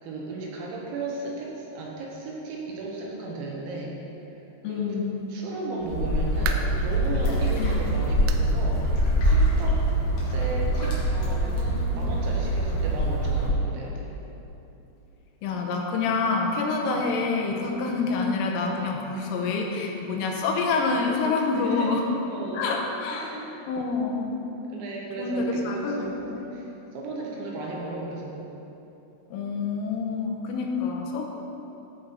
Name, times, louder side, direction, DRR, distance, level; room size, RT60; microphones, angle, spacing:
voice 1, 0.0-4.0 4.2-4.4 4.6-5.0 5.3-9.8 10.2-14.1 16.8-17.0 17.8-18.0 21.5-22.0 22.3-22.6 23.1-23.5 24.1-24.3 24.7-26.2 26.5-28.5, right 2 dB, 75° right, -3 dB, 3.2 m, -35 dB
voice 2, 4.6-5.2 7.6-7.7 15.4-22.1 22.5-23.3 23.7-24.4 25.2-26.5 29.3-31.3, left 4 dB, 85° left, 1 dB, 3.4 m, -27 dB
sound 1, 5.8-13.5, right 1 dB, 60° left, 1.8 m, -24 dB
sound 2, 6.4-6.9 7.4-7.5 8.3-8.5 8.9-9.0 9.5-9.6 10.7-10.8, right 6 dB, 90° right, 2.5 m, -35 dB
14.0 x 5.5 x 4.2 m, 3.0 s
omnidirectional pair, 5.6 m